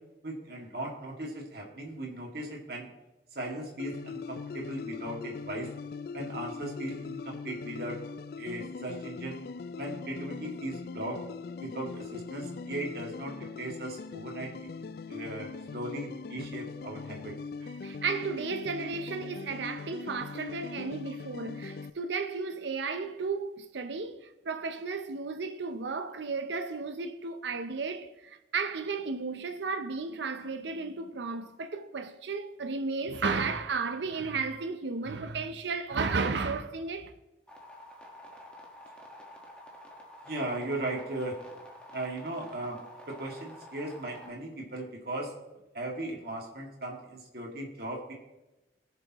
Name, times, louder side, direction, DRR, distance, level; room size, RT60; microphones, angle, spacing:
voice 1, 0.2-2.9 3.3-5.7 6.1-8.0 8.4-9.4 9.8-11.2 11.6-17.3 40.2-41.4 41.9-42.8 43.1-45.3 45.7-48.1, right 1 dB, 55° right, 2.1 m, -37 dB
sound 1, 3.8-21.9, left 5 dB, 55° left, 0.3 m, -41 dB
voice 2, 17.8-37.1, right 4 dB, 75° right, 0.6 m, -34 dB
sound 2, 37.5-44.3, left 1 dB, 5° left, 1.4 m, -49 dB
19.5 x 6.8 x 3.0 m
head